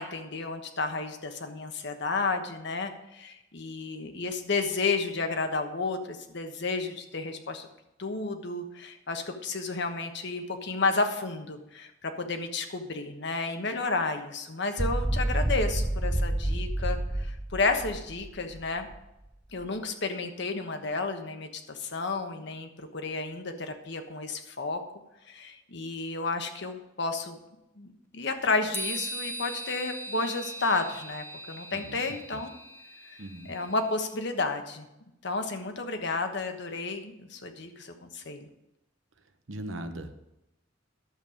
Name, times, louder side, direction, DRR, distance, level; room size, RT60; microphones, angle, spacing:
voice 1, 0.0-7.7 8.0-18.9 19.5-24.8 25.3-27.4 27.8-32.5 33.5-34.9 35.2-38.4, left 3 dB, 65° left, 6 dB, 1.2 m, -32 dB
sound 1, 14.8-19.0, right 1 dB, 10° right, 0.4 m, -29 dB
sound 2, 28.7-34.0, right 1 dB, 10° left, 1.1 m, -40 dB
voice 2, 33.2-33.5 39.5-40.1, right 1 dB, 85° right, 8 dB, 1.0 m, -39 dB
11.5 x 7.5 x 5.0 m, 0.90 s
head